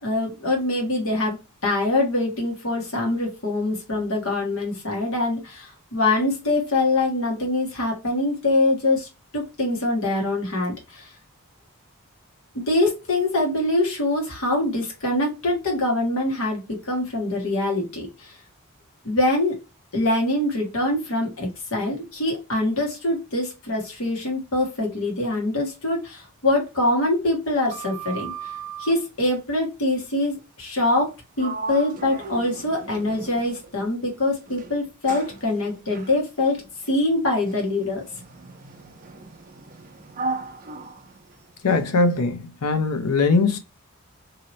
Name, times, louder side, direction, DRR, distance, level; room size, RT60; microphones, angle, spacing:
voice 1, 0.0-1.4 1.6-9.1 9.3-11.1 12.7-18.3 19.0-19.6 19.9-28.3 28.8-31.1 31.4-36.6 36.9-38.0, left 2 dB, 65° left, 1.3 m, -24 dB
Sliding door, 27.5-29.0 30.9-31.1 31.4-33.8 34.5-41.9, right 4 dB, 35° right, 0.5 m, -37 dB
voice 2, 41.6-43.6, left 3 dB, 90° left, 0.6 m, -21 dB
2.8 x 2.7 x 3.0 m
head